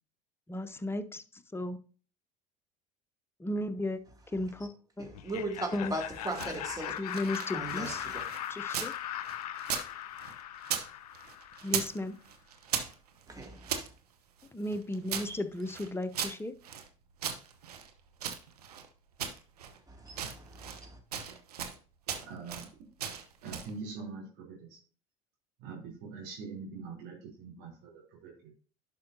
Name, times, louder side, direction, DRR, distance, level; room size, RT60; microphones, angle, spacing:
voice 1, 0.5-1.8 3.4-4.0 4.3-4.7 5.0-5.1 5.7-5.9 7.0-8.0 8.5-8.9 11.6-12.2 14.5-16.5, left 1 dB, 10° left, 0.7 m, -34 dB
voice 2, 5.0-6.9 7.5-8.2 13.3-13.8 15.3-15.4 19.9-21.0, right 2 dB, 20° right, 2.6 m, -38 dB
Laughter, 5.1-11.9, left 11 dB, 80° left, 0.5 m, -39 dB
sound 1, 6.1-9.0 9.2-10.9 11.1-12.0 12.2-13.9 14.4-16.9 17.2-18.9 19.2-19.8 20.1-20.9 21.1-21.8 22.1-22.7 23.0-23.7, right 8 dB, 85° right, 0.9 m, -38 dB
voice 3, 22.3-22.6 23.4-24.6 25.6-28.5, right 4 dB, 60° right, 3.3 m, -43 dB
11.0 x 5.4 x 2.7 m
hypercardioid pair, 70°, 19 cm